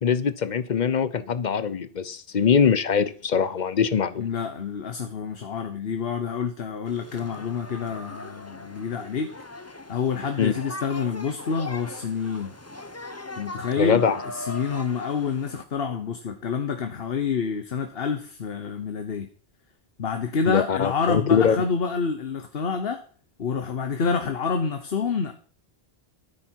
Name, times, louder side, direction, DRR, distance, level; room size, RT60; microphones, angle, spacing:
voice 1, 0.0-4.3 10.4-10.5 13.8-14.2 20.5-21.6, left 7 dB, 50° left, 0.7 m, -22 dB
voice 2, 4.2-9.3 9.9-12.6 13.3-14.0 14.3-19.3 20.0-23.0 23.4-25.3, left 5 dB, 65° left, 1.2 m, -28 dB
sound 1, 6.9-15.6, left 2 dB, 15° left, 0.7 m, -39 dB
13.5 x 8.5 x 4.6 m
omnidirectional pair, 1.1 m